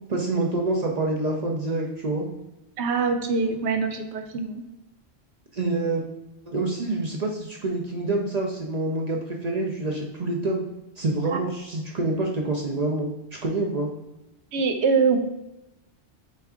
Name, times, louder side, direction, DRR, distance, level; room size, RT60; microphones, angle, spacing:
voice 1, 0.1-2.3 5.5-6.0 6.5-10.6 11.0-13.1 13.4-13.9, right 2 dB, 45° right, 0 dB, 0.6 m, -26 dB
voice 2, 2.8-4.6 11.3-11.4 14.5-15.2, right 5 dB, 85° right, 6 dB, 0.9 m, -23 dB
4.3 x 3.4 x 3.5 m, 0.96 s
omnidirectional pair, 1.1 m